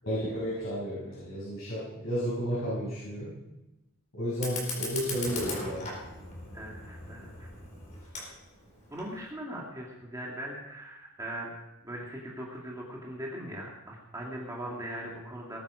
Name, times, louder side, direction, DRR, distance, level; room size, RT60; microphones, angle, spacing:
voice 1, 0.0-3.4 4.1-5.9, equal, 65° left, -9 dB, 7.0 m, -32 dB
Fire, 4.3-9.3, left 2 dB, 35° left, 4.4 m, -39 dB
voice 2, 6.5-7.5 8.9-11.5 11.8-15.6, right 1 dB, 15° right, -3 dB, 2.3 m, -40 dB
20.0 x 10.5 x 5.0 m, 0.96 s
head